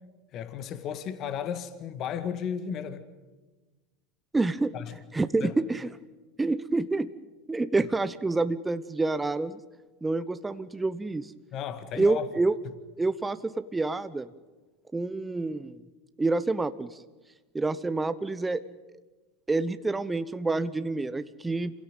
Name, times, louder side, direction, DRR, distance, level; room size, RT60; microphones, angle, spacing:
voice 1, 0.3-3.1 4.7-5.0 5.4-5.5 11.5-12.3, left 8 dB, 45° left, 1.9 m, -34 dB
voice 2, 4.3-4.7 5.1-5.9 6.4-7.1 7.5-9.6 10.0-11.3 12.0-12.5 13.0-14.3 14.9-15.8 16.2-17.0 17.5-18.6 19.5-21.7, right 3 dB, 15° right, 0.9 m, -28 dB
27.0 x 17.0 x 9.1 m
hypercardioid pair, 90°, 0 cm